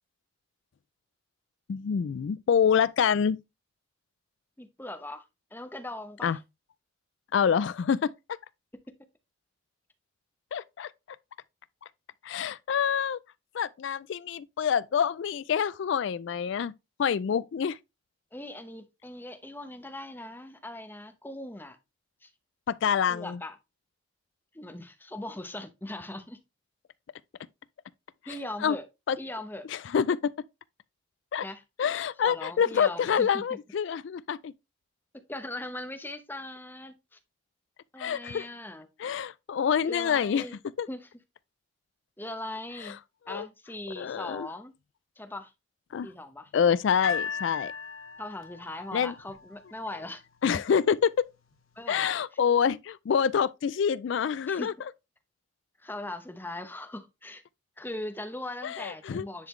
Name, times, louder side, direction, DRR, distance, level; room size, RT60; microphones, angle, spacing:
voice 1, 1.7-3.4 6.2-6.4 7.3-8.1 10.5-10.9 12.2-13.2 13.5-16.7 17.0-17.8 22.7-23.4 28.6-28.8 29.1-29.2 29.7-30.3 31.3-31.4 31.8-34.5 38.0-38.5 39.0-40.5 40.8-40.9 43.3-43.5 44.0-44.5 45.9-46.1 46.5-47.7 48.9-49.1 50.4-51.2 51.9-54.7 58.6-59.3, left 7 dB, 60° left, 0.3 m, -26 dB
voice 2, 4.6-6.4 18.3-21.8 22.2-22.3 23.1-23.6 24.5-26.4 28.3-28.8 29.2-29.7 31.4-31.6 32.2-33.4 35.3-37.2 37.9-38.9 39.8-40.6 40.9-41.1 42.2-43.0 43.3-44.7 45.2-45.5 46.0-46.5 48.2-50.2 51.7-52.1 54.5-54.7 55.8-57.4 57.8-59.5, left 1 dB, 10° left, 0.8 m, -40 dB
sound 1, 47.0-50.2 51.0-51.1, left 6 dB, 85° left, 1.0 m, -37 dB
10.0 x 4.0 x 3.1 m
head